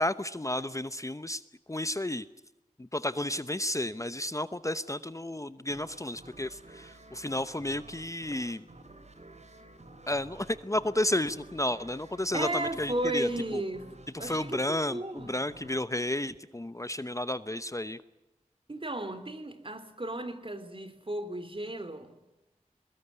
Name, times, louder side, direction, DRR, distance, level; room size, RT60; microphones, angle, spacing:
voice 1, 0.0-1.4 1.7-2.3 2.8-8.7 10.1-13.6 14.1-18.0, left 1 dB, 25° left, 0.8 m, -32 dB
sound 1, 5.7-17.1, right 2 dB, 55° right, 3.7 m, -52 dB
voice 2, 12.3-13.9 14.2-15.4 18.7-22.1, right 1 dB, 40° right, 3.1 m, -34 dB
23.0 x 21.0 x 9.8 m
wide cardioid pair, 60°, 14 cm